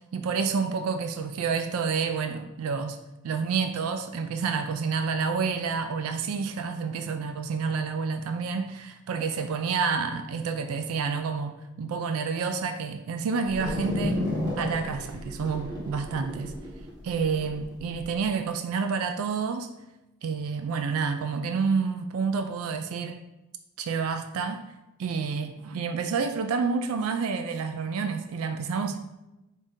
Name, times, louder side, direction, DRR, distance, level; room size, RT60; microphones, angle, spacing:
voice 1, 0.1-3.0 3.2-14.2 14.6-16.5 17.0-19.7 20.2-23.2 23.8-24.6 25.0-29.0, right 5 dB, 75° right, 8 dB, 0.3 m, -29 dB
sound 1, 13.5-18.1, left 1 dB, 15° right, 1.2 m, -32 dB
5.1 x 2.7 x 3.5 m, 0.96 s
head